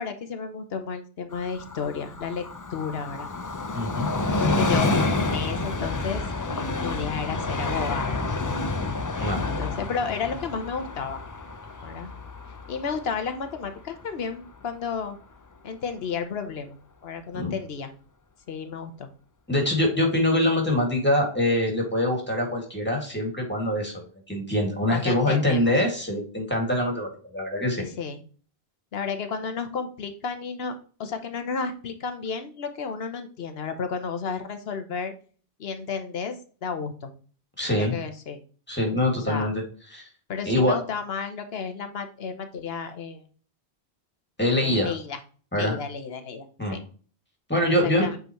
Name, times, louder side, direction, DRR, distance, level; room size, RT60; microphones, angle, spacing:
voice 1, 0.0-3.3 4.4-8.3 9.4-11.2 11.8-12.1 12.7-15.2 15.6-17.9 18.5-19.1 24.9-25.8 27.8-28.2 28.9-35.1 35.6-36.4 36.6-37.1 37.7-38.4 39.1-39.5 40.3-43.3 44.6-45.2 45.5-46.5 46.7-46.8 47.7-48.2, left 5 dB, 75° left, 8 dB, 1.1 m, -32 dB
Train, 1.3-14.6 15.0-15.1, left 3 dB, 30° left, 0.3 m, -29 dB
voice 2, 3.7-4.1 9.2-9.5 17.3-17.5 19.5-27.8 37.6-37.9 38.7-39.5 39.9-40.1 40.5-40.8 44.4-44.9 45.5-45.7 46.6-46.8 47.5-48.1, left 1 dB, 10° left, 1 dB, 2.1 m, -24 dB
7.9 x 4.0 x 3.0 m, 0.40 s
omnidirectional pair, 1.0 m